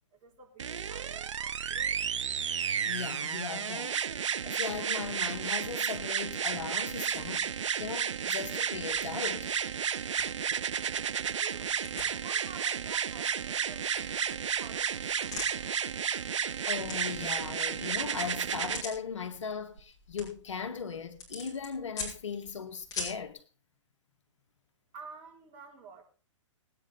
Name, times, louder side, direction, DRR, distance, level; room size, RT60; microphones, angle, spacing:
voice 1, 0.1-2.0 10.2-10.5 10.7-13.9 14.2-15.8 24.9-26.0, right 5 dB, 35° right, 4.2 m, -51 dB
sound 1, 0.6-18.8 19.8-19.9, right 7 dB, 70° right, 0.6 m, -32 dB
voice 2, 2.9-4.0 4.4-9.6 16.7-23.4, left 6 dB, 70° left, 1.9 m, -38 dB
sound 2, 5.1-23.3, left 4 dB, 20° left, 6.1 m, -47 dB
20.0 x 9.4 x 4.2 m
figure-of-eight pair, 115°, 16 cm